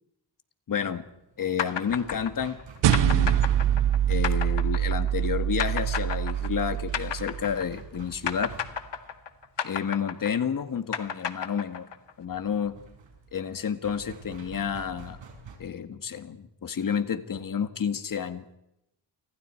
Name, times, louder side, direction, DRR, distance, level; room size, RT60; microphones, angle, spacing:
voice 1, 0.7-1.0 1.4-2.6 2.8-3.4 4.1-8.5 9.6-11.9 12.2-12.7 13.3-15.2 15.6-18.4, left 7 dB, 50° left, 10 dB, 1.9 m, -30 dB
sound 1, 0.9-15.6, right 5 dB, 90° right, 6.3 m, -49 dB
sound 2, 1.6-8.0 8.3-12.1, left 8 dB, 70° left, 1.8 m, -33 dB
sound 3, 2.8-7.5, right 11 dB, 70° right, 0.8 m, -25 dB
29.5 x 25.5 x 4.6 m, 0.84 s
wide cardioid pair, 170°, 43 cm